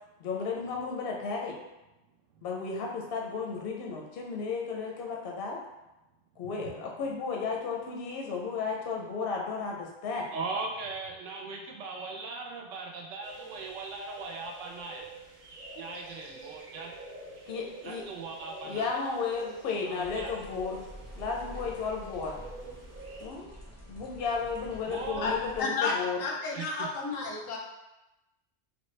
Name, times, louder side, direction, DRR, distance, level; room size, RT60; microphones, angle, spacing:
voice 1, 0.2-1.6 2.4-5.6 6.4-10.3 17.5-18.0 18.7-20.9 21.2-22.4 23.2-23.5 23.9-26.2, left 5 dB, 60° left, 0 dB, 0.6 m, -33 dB
voice 2, 10.3-15.1 15.7-16.9 17.8-18.9 19.9-20.3 24.9-25.3 26.5-26.9, right 3 dB, 75° right, 1 dB, 0.9 m, -39 dB
sound 1, 13.2-23.3, right 2 dB, 55° right, 0.5 m, -47 dB
sound 2, 20.0-25.6, equal, 20° left, 0.4 m, -47 dB
voice 3, 25.6-25.9 26.2-27.6, left 4 dB, 90° left, -1 dB, 1.0 m, -31 dB
3.4 x 2.1 x 3.1 m, 0.98 s
omnidirectional pair, 1.3 m